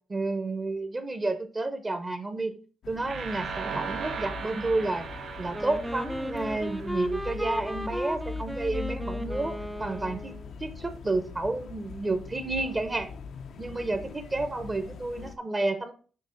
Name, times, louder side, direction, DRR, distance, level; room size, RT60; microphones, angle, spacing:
voice 1, 0.1-2.6 2.9-5.1 5.4-10.3 10.6-13.1 13.6-15.9, right 2 dB, 25° right, 9 dB, 0.7 m, -30 dB
sound 1, 2.8-15.4, left 5 dB, 65° left, 0.5 m, -42 dB
sound 2, 3.1-7.9, right 5 dB, 60° right, 1.3 m, -38 dB
Wind instrument woodwind instrument, 5.5-10.5, equal, ahead, 0.3 m, -36 dB
6.6 x 2.9 x 5.2 m, 0.40 s
cardioid pair, 90°, 0 cm